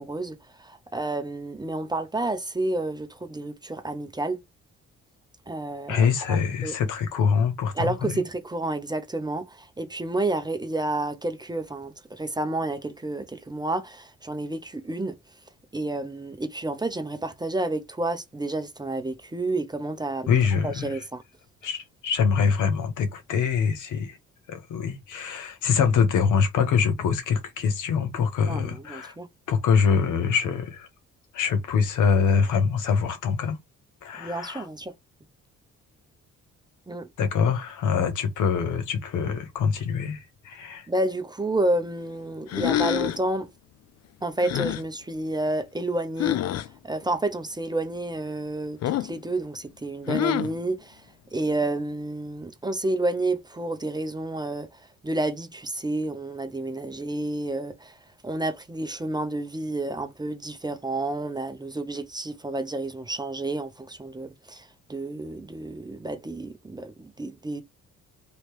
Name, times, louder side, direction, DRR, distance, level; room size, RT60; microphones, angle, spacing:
voice 1, 0.0-4.4 5.5-6.4 6.6-6.7 7.7-15.2 15.7-20.3 20.6-21.2 28.4-29.3 34.2-34.9 36.9-37.1 40.9-43.5 44.2-46.4 46.8-51.1 51.3-58.0 58.2-67.6, right 2 dB, 15° right, 0.6 m, -30 dB
voice 2, 5.9-8.2 20.3-21.0 21.6-24.2 24.5-29.1 29.5-30.9 31.3-33.6 34.0-34.7 37.2-40.9, left 6 dB, 80° left, 1.0 m, -24 dB
sound 1, 42.5-43.3 44.4-44.8 46.2-46.7 48.8-49.2 50.1-50.6, left 11 dB, 60° left, 0.5 m, -26 dB
3.1 x 2.8 x 3.1 m
cardioid pair, 90°, 30 cm